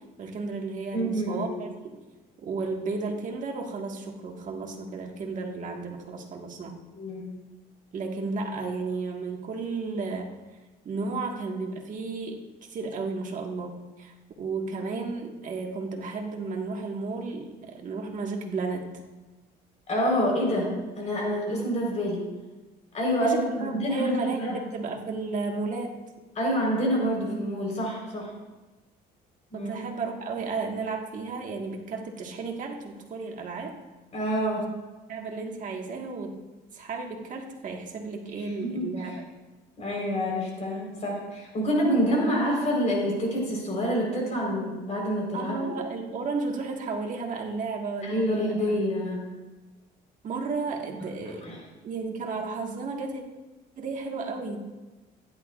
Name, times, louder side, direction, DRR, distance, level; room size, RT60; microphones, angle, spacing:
voice 1, 0.2-2.0 2.4-6.7 7.9-10.3 10.8-12.4 12.7-19.0 23.2-25.9 29.5-33.7 35.1-36.4 36.7-39.1 45.3-48.6 50.2-51.5 51.8-53.2 53.8-54.6, right 3 dB, 50° right, 1 dB, 1.7 m, -33 dB
voice 2, 0.9-1.5 7.0-7.3 19.9-22.3 22.9-24.6 26.4-28.3 29.5-29.7 34.1-34.6 38.4-38.9 39.8-45.6 48.0-49.2 51.4-51.6, equal, 40° left, -2 dB, 4.2 m, -27 dB
16.0 x 10.5 x 2.5 m, 1.2 s
cardioid pair, 110°, 17 cm